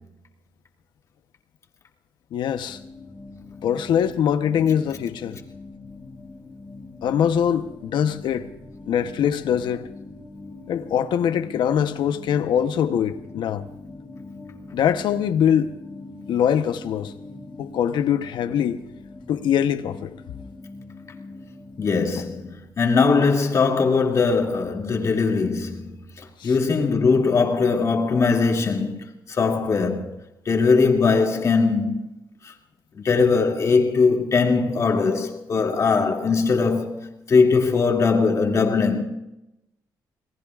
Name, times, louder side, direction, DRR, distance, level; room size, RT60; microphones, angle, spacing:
voice 1, 2.3-2.8 3.6-5.4 7.0-8.5 8.9-9.9 10.7-13.6 14.7-15.8 16.3-17.1 17.6-18.8 19.3-20.1 26.4-26.6, left 9 dB, 80° left, 0.9 m, -23 dB
sound 1, 2.7-22.5, left 3 dB, 20° left, 2.6 m, -42 dB
voice 2, 21.8-30.1 30.5-32.0 32.4-32.5 33.0-37.0 37.3-39.0, left 4 dB, 40° left, 2.5 m, -20 dB
27.5 x 19.0 x 2.5 m
cardioid pair, 135°, 8 cm